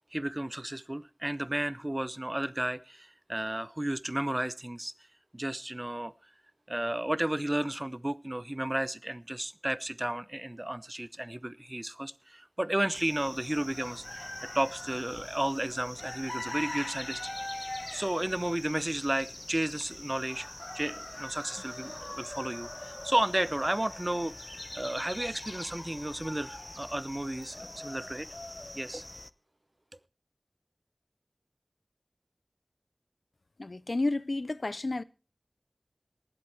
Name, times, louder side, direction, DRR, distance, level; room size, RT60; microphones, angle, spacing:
voice 1, 0.1-4.9 5.3-6.1 6.7-14.3 14.5-17.2 17.6-20.5 20.7-24.3 24.7-28.3 28.7-29.0, right 1 dB, 35° right, 0.6 m, -33 dB
sound 1, 12.9-29.3, left 1 dB, 35° left, 0.5 m, -42 dB
voice 2, 33.6-35.0, left 2 dB, 85° left, 0.5 m, -31 dB
19.0 x 7.8 x 4.5 m
wide cardioid pair, 45°, 0 cm